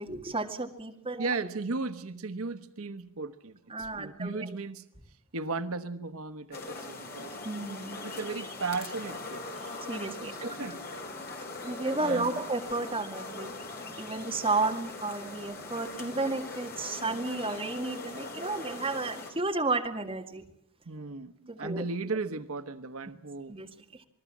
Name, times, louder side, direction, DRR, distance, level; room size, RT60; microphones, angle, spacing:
voice 1, 0.0-1.3 3.7-4.6 7.4-8.0 9.7-10.7 11.6-13.5 14.0-20.4 21.5-21.9 23.5-24.0, right 3 dB, 25° right, 3 dB, 2.1 m, -32 dB
voice 2, 1.2-4.8 5.3-7.4 8.0-9.5 10.2-10.8 12.0-12.4 20.9-23.6, right 3 dB, 80° right, 10 dB, 1.0 m, -36 dB
sound 1, 6.5-19.3, left 3 dB, 45° left, 4.7 m, -41 dB
27.5 x 20.0 x 7.3 m, 0.69 s
head